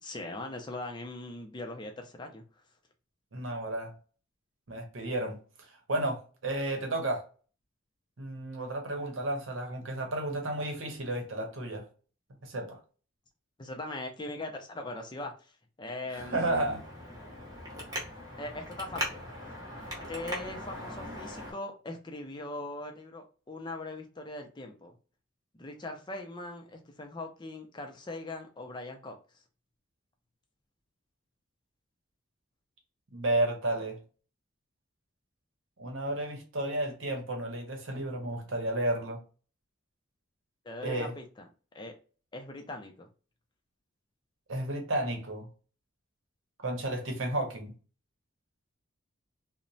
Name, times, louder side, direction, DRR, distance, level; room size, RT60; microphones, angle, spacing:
voice 1, 0.0-2.4 13.6-15.3 15.8-16.8 18.4-19.2 20.1-24.9 25.5-29.2 40.6-41.5 41.7-41.9 42.3-43.1, left 2 dB, 20° left, 0.4 m, -40 dB
voice 2, 3.3-3.9 4.7-5.4 5.9-7.2 8.2-11.8 12.4-12.8 16.3-16.8 33.1-34.0 35.8-39.2 40.8-41.1 44.5-45.5 46.6-47.7, right 1 dB, 70° right, 0.8 m, -32 dB
Traffic noise roadway noise, 16.1-21.5, equal, 20° right, 0.8 m, -40 dB
2.9 x 2.1 x 2.6 m
head